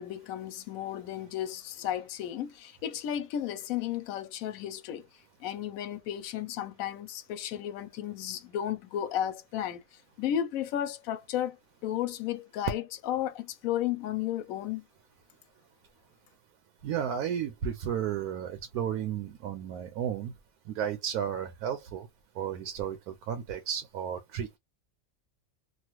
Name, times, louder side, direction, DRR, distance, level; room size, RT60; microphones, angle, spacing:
voice 1, 0.0-5.1 5.4-9.8 10.2-11.6 11.8-14.8, left 11 dB, 70° left, 1.0 m, -33 dB
voice 2, 16.8-20.3 20.7-22.1 22.4-24.6, right 9 dB, 85° right, 1.1 m, -33 dB
3.0 x 2.3 x 2.9 m
omnidirectional pair, 1.6 m